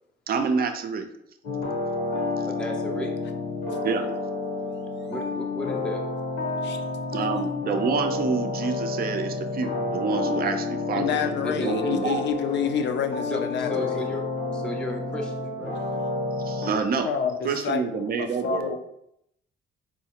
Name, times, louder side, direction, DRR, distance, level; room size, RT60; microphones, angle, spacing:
voice 1, 0.3-1.1 3.8-4.1 7.1-11.2 11.5-12.2 16.4-17.1 17.4-18.8, right 5 dB, 50° right, 7 dB, 0.5 m, -27 dB
sound 1, 1.4-16.7, left 3 dB, 80° left, 1.1 m, -30 dB
voice 2, 2.1-3.1 5.1-6.0 11.4-12.1 13.3-13.4 13.7-14.2 14.5-15.8, left 1 dB, 5° left, 1 dB, 0.5 m, -34 dB
voice 3, 6.6-6.9 10.9-14.2 17.0-18.8, left 7 dB, 65° left, 7 dB, 0.5 m, -29 dB
4.1 x 2.3 x 2.9 m, 0.76 s
cardioid pair, 90°, 20 cm